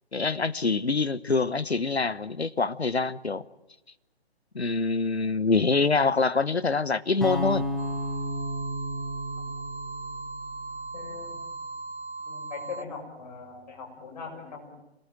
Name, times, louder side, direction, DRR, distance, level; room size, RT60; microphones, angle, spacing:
voice 1, 0.1-3.4 4.5-7.6, left 4 dB, 75° left, 1.2 m, -25 dB
sound 1, 7.2-11.3, equal, ahead, 0.8 m, -33 dB
sound 2, 7.8-12.8, right 3 dB, 80° right, 3.6 m, -38 dB
voice 2, 10.9-11.4 12.2-14.7, left 5 dB, 40° left, 7.4 m, -40 dB
26.5 x 18.5 x 9.1 m
figure-of-eight pair, 145°, 32 cm